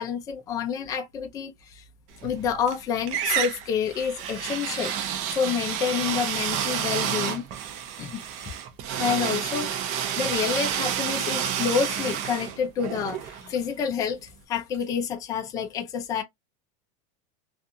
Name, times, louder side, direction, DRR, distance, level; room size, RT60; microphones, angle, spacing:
voice 1, 0.0-1.9 2.2-4.9 5.3-7.5 8.0-8.2 9.0-16.2, left 7 dB, 20° left, 0.5 m, -28 dB
sound 1, 2.2-2.8 3.1-13.9, right 9 dB, 40° right, 0.6 m, -30 dB
2.4 x 2.4 x 2.6 m
supercardioid pair, 170°, 19 cm